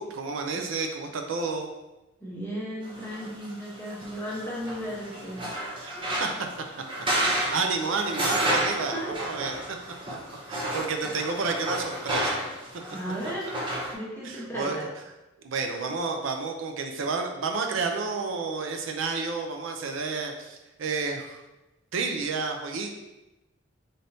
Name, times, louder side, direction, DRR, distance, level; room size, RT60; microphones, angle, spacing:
voice 1, 0.0-1.7 5.8-6.5 7.1-9.6 10.5-12.4 14.2-14.9 15.4-21.4 21.9-23.0, right 4 dB, 85° right, 4 dB, 0.5 m, -30 dB
voice 2, 2.2-5.7 8.9-9.1 12.9-13.5 13.9-14.9, equal, 10° left, -7 dB, 0.9 m, -35 dB
sound 1, 2.9-13.9, right 1 dB, 25° right, 0.5 m, -31 dB
4.0 x 3.4 x 2.6 m, 1.0 s
head